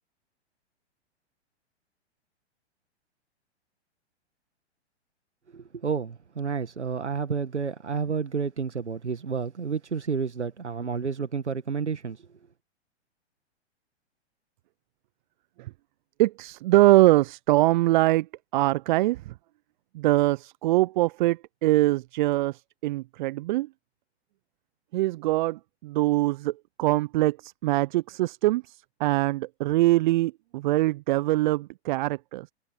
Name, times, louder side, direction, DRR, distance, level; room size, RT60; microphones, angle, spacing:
voice 1, 5.5-12.3, right 5 dB, 85° right, 1.7 m, -30 dB
voice 2, 16.2-18.3 18.5-19.3 19.9-23.7 24.9-32.5, right 18 dB, 45° right, 0.8 m, -23 dB
figure-of-eight pair, 110°, 34 cm